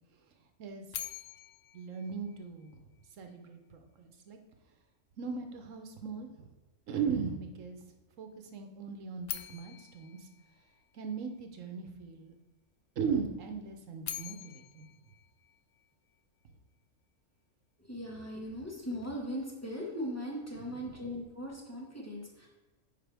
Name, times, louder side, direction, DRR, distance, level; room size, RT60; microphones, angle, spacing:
sound 1, 0.9-3.0 9.2-11.4 13.8-16.2, left 11 dB, 75° left, 0.9 m, -45 dB
voice 1, 1.7-2.7 3.2-4.4 5.2-6.5 6.9-7.9 8.2-10.3 10.9-12.3 13.0-14.9 20.6-20.8, right 6 dB, 75° right, 5 dB, 1.2 m, -38 dB
voice 2, 17.8-22.5, equal, 10° left, -3 dB, 1.5 m, -39 dB
8.7 x 5.2 x 3.4 m, 1.2 s
omnidirectional pair, 1.3 m